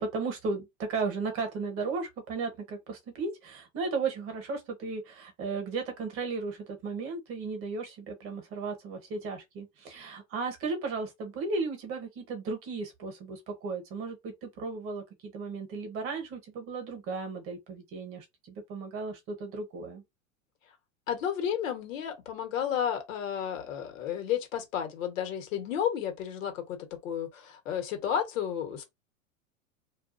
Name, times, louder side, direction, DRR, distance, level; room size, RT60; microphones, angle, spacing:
voice 1, 0.0-20.0, right 4 dB, 35° right, 0.9 m, -35 dB
voice 2, 21.1-28.8, left 9 dB, 75° left, 1.1 m, -32 dB
2.4 x 2.2 x 2.4 m
hypercardioid pair, 120°, 39 cm